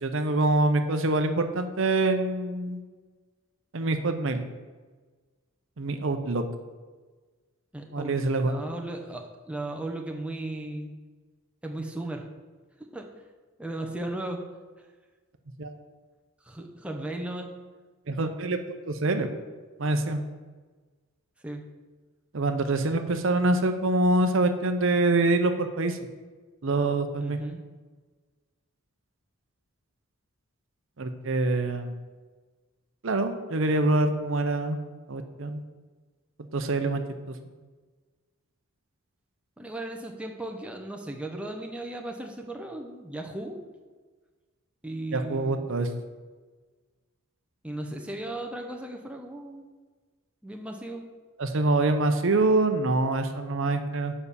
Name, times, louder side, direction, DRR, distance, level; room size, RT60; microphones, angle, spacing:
voice 1, 0.0-2.8 3.7-4.4 5.8-6.4 7.9-8.6 15.6-15.7 18.1-18.6 18.9-19.3 19.8-20.2 22.3-26.0 26.6-27.4 31.0-31.9 33.0-34.8 35.1-35.6 36.4-37.0 37.3-37.4 45.1-45.9 51.4-54.1, right 2 dB, 60° right, 7 dB, 0.7 m, -25 dB
voice 2, 7.7-10.9 11.6-12.2 12.9-13.0 13.6-14.4 14.8-14.9 16.4-17.5 21.4-21.6 27.2-27.6 39.6-43.6 44.8-45.7 47.6-49.7 50.4-51.1, right 1 dB, 5° right, 2 dB, 0.8 m, -36 dB
6.9 x 5.6 x 6.9 m, 1.4 s
head